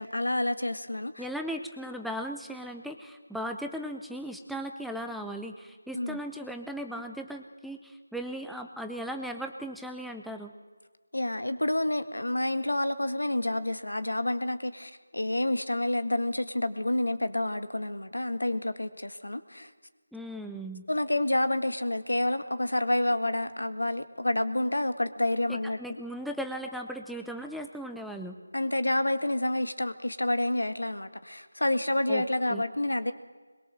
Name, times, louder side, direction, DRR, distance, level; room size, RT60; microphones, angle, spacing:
voice 1, 0.0-1.3 5.9-6.2 11.1-19.7 20.9-25.8 28.5-33.1, left 1 dB, 90° left, 10 dB, 2.0 m, -29 dB
voice 2, 1.2-10.5 20.1-20.8 25.5-28.4 32.1-32.2 32.5-32.6, equal, ahead, 4 dB, 0.7 m, -37 dB
22.0 x 22.0 x 7.8 m, 1.4 s
figure-of-eight pair, 165°, 0 cm